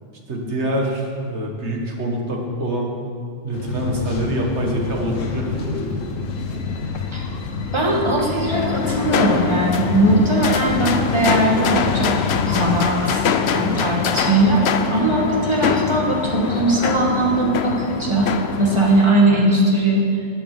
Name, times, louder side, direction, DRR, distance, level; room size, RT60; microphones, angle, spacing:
voice 1, 0.3-2.9 3.4-6.0, right 1 dB, 60° right, 0 dB, 2.0 m, -25 dB
sound 1, 3.5-12.8, left 4 dB, 75° left, 1.3 m, -27 dB
voice 2, 7.7-12.2 12.5-13.2 13.5-14.6 14.9-18.3 18.6-20.0, right 2 dB, 20° right, -3 dB, 2.1 m, -19 dB
sound 2, 8.5-19.1, left 7 dB, 60° left, 0.8 m, -24 dB
19.0 x 7.1 x 5.2 m, 2.3 s
omnidirectional pair, 1.3 m